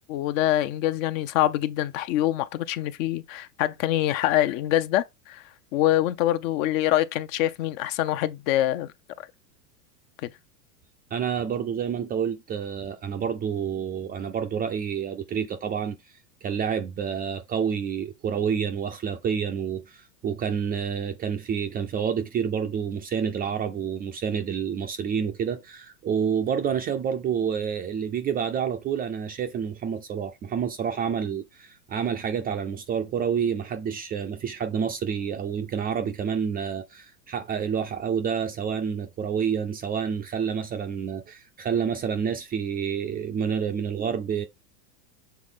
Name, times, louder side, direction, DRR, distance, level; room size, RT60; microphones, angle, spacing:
voice 1, 0.1-5.4 5.7-8.9 10.2-10.3, left 13 dB, 55° left, 0.8 m, -25 dB
voice 2, 11.1-16.0 16.4-44.5, right 7 dB, 20° right, 0.4 m, -28 dB
7.1 x 3.7 x 3.7 m
hypercardioid pair, 115°, 49 cm